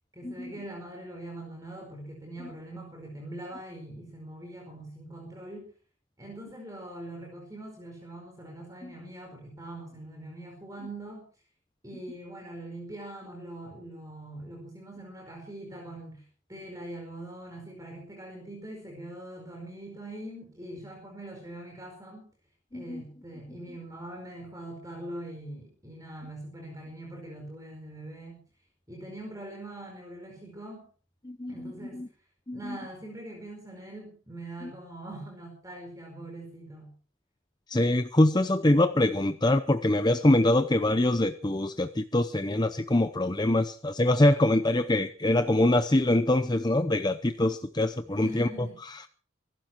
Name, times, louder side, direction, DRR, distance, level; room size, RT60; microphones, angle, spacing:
voice 1, 0.1-5.7 6.2-11.3 11.8-22.3 22.7-28.4 28.9-30.8 31.5-32.0 32.5-36.9 48.1-48.8, right 1 dB, 15° right, 1 dB, 4.7 m, -42 dB
voice 2, 31.2-32.1 32.5-32.8 37.7-48.5, left 1 dB, 20° left, 9 dB, 0.7 m, -24 dB
24.0 x 12.5 x 4.5 m, 0.40 s
head